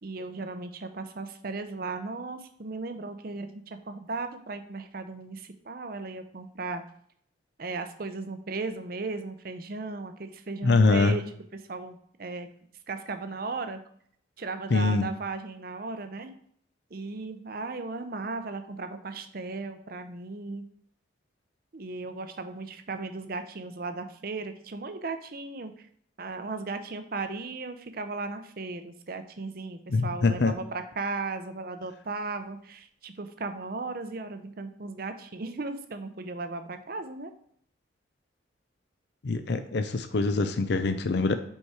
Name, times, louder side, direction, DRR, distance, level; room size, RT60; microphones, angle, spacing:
voice 1, 0.0-6.8 7.6-11.2 11.7-12.5 12.9-13.8 14.4-16.3 16.9-20.6 21.7-25.7 26.2-37.3, right 3 dB, 50° right, 8 dB, 0.6 m, -36 dB
voice 2, 10.6-11.2 14.7-15.1 29.9-30.5 39.2-41.3, left 3 dB, 60° left, 9 dB, 0.5 m, -24 dB
5.4 x 4.7 x 4.8 m, 0.64 s
head